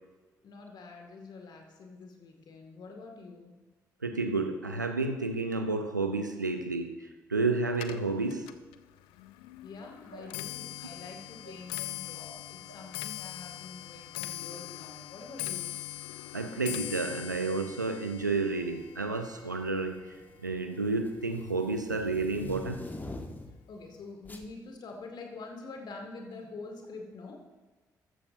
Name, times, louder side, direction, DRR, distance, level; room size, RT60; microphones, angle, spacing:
voice 1, 0.4-3.6 9.6-15.7 23.7-27.4, left 3 dB, 50° left, 2 dB, 2.1 m, -46 dB
voice 2, 4.0-8.5 10.1-10.3 16.3-20.0 20.4-22.9, right 3 dB, 85° right, 7 dB, 0.6 m, -31 dB
Clock, 7.7-21.1 21.4-21.9 22.7-22.8 23.1-23.5 23.7-23.8, left 15 dB, 65° left, 0.4 m, -42 dB
sound 1, 17.3-17.6 18.6-19.0 19.4-23.7 24.2-24.5, left 2 dB, 20° left, 1.3 m, -44 dB
14.0 x 13.5 x 2.7 m, 1.2 s
figure-of-eight pair, 40°, 9 cm